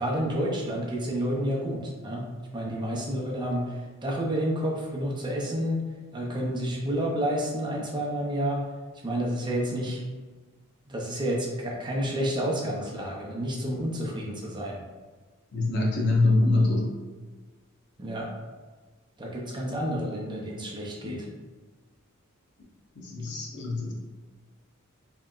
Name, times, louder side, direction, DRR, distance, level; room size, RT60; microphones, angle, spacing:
voice 1, 0.0-2.3 2.5-5.8 6.1-8.6 9.0-10.0 10.9-14.8 18.0-18.3 19.2-21.2, equal, 20° right, -2 dB, 0.6 m, -30 dB
voice 2, 15.5-16.9 21.0-21.2 23.0-23.9, left 2 dB, 50° left, -1 dB, 0.7 m, -24 dB
4.5 x 2.9 x 2.4 m, 1.4 s
head